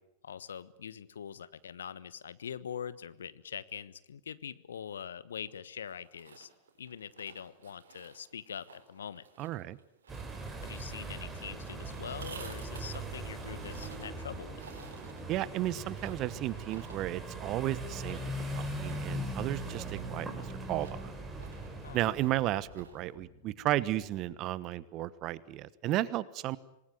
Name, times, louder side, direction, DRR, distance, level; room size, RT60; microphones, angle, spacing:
voice 1, 0.2-6.5 6.8-9.3 10.6-14.6 21.8-22.0, left 8 dB, 70° left, 17 dB, 1.1 m, -43 dB
sound 1, 5.8-23.1, right 5 dB, 70° right, 4.5 m, -55 dB
voice 2, 9.4-9.8 15.3-18.2 18.5-21.1 21.9-26.6, right 14 dB, 40° right, 19 dB, 1.1 m, -33 dB
sound 2, 10.1-22.5, right 1 dB, 15° right, 4.8 m, -40 dB
Boat Water vehicle, 10.6-24.4, left 3 dB, 30° left, 6.8 m, -59 dB
27.0 x 20.0 x 9.3 m, 0.85 s
figure-of-eight pair, 90°, 0 cm